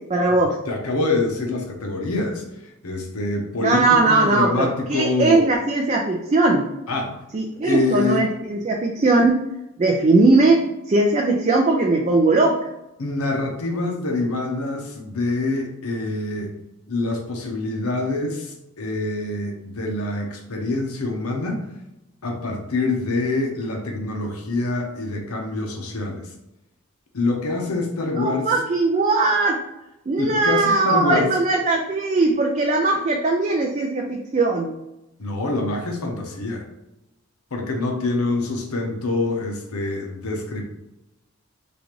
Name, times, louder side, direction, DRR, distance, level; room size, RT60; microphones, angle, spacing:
voice 1, 0.1-0.5 3.6-6.7 7.3-9.4 9.8-12.6 28.2-29.6 30.1-34.7, right 2 dB, 30° right, 0 dB, 0.4 m, -19 dB
voice 2, 0.7-2.4 2.8-5.4 6.9-7.1 7.6-8.3 13.0-16.5 16.9-21.6 22.2-26.2 27.1-28.5 30.2-31.3 35.2-36.7 37.5-40.6, left 2 dB, 80° left, 2 dB, 0.8 m, -25 dB
4.9 x 2.5 x 3.0 m, 0.92 s
head